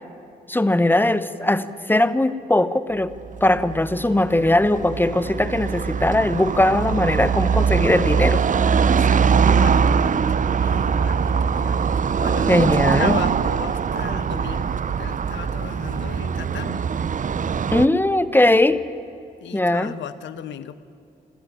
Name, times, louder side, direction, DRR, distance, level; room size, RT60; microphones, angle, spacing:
voice 1, 0.5-3.1 3.4-8.5 12.5-13.2 17.7-18.8 19.5-19.9, left 1 dB, 10° left, 14 dB, 1.0 m, -19 dB
Car passing by / Traffic noise roadway noise, 3.2-17.9, right 6 dB, 45° right, 0.7 m, -22 dB
voice 2, 8.9-11.9 12.2-16.8 19.4-20.8, left 10 dB, 80° left, 15 dB, 0.9 m, -36 dB
sound 1, 10.6-13.5, right 3 dB, 75° right, 2.0 m, -36 dB
21.0 x 14.0 x 9.9 m, 2.6 s
supercardioid pair, 55°, 19 cm